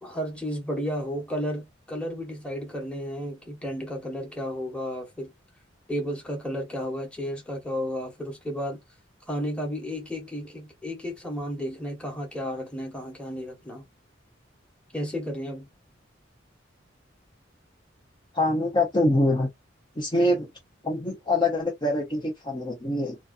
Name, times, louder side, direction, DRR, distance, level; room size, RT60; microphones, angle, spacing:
voice 1, 0.0-5.3 5.9-8.8 9.3-13.9 14.9-15.7, equal, 5° left, 1.3 m, -33 dB
voice 2, 18.3-19.5 20.0-20.5 20.8-23.2, left 1 dB, 25° left, 0.7 m, -24 dB
3.9 x 2.3 x 2.5 m
head